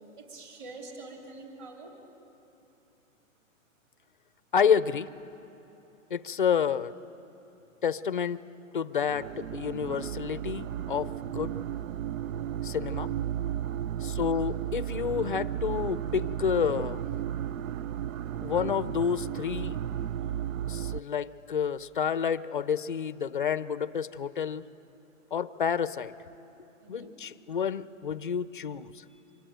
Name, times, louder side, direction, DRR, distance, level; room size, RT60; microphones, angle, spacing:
voice 1, 0.2-1.9 14.0-14.2 26.8-27.1 29.1-29.2, right 3 dB, 20° right, 1 dB, 3.0 m, -46 dB
voice 2, 4.5-5.1 6.1-6.9 7.8-8.4 8.7-11.6 12.6-13.1 14.0-17.0 18.4-19.8 20.7-24.6 25.3-26.1 26.9-29.0, left 7 dB, 40° left, 15 dB, 0.5 m, -29 dB
sound 1, 9.1-21.0, right 10 dB, 80° right, 0.6 m, -34 dB
25.0 x 22.5 x 9.1 m, 3.0 s
hypercardioid pair, 175°, 40 cm